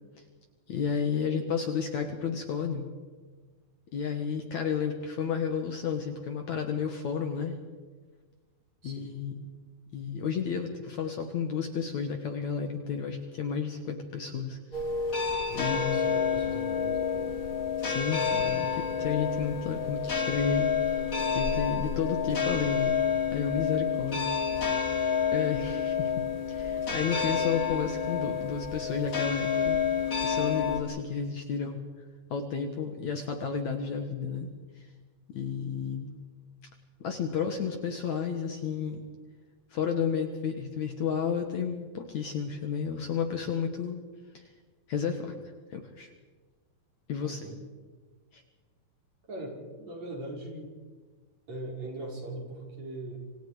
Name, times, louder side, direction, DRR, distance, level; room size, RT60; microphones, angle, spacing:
voice 1, 0.7-2.9 3.9-7.6 8.8-9.5 9.9-14.8 15.5-16.0 17.8-20.7 21.3-22.9 23.3-24.4 24.6-24.8 25.3-26.1 26.5-29.8 30.2-31.8 32.3-34.5 35.3-36.1 37.0-39.0 39.7-44.0 44.9-45.3 45.7-46.1 47.1-47.5 48.3-48.4, left 6 dB, 55° left, 5 dB, 2.5 m, -32 dB
voice 2, 8.8-9.2 15.5-17.4 47.2-47.6 49.3-50.7 51.5-53.2, right 2 dB, 45° right, -1 dB, 6.2 m, -41 dB
sound 1, 14.7-30.8, left 6 dB, 25° left, 2.3 m, -29 dB
27.0 x 26.5 x 5.0 m, 1.4 s
omnidirectional pair, 4.5 m